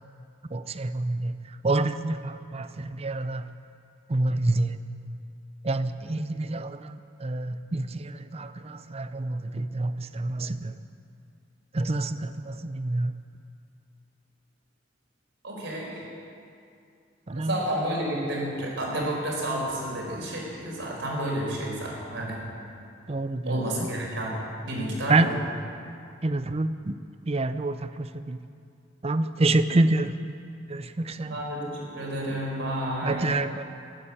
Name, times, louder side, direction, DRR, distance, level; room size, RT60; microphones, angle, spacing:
voice 1, 0.5-1.3 1.6-3.4 4.1-4.8 5.6-10.7 11.7-13.1 17.3-17.5 23.1-23.6 25.1-25.3 26.2-26.9 27.3-28.4 29.0-30.1 30.7-31.4 33.0-33.6, right 2 dB, 30° right, 11 dB, 0.6 m, -27 dB
voice 2, 15.4-16.1 17.3-22.4 23.4-24.4 24.6-25.3 31.2-33.3, right 1 dB, 75° right, -3 dB, 4.8 m, -30 dB
14.5 x 12.0 x 8.5 m, 2.5 s
head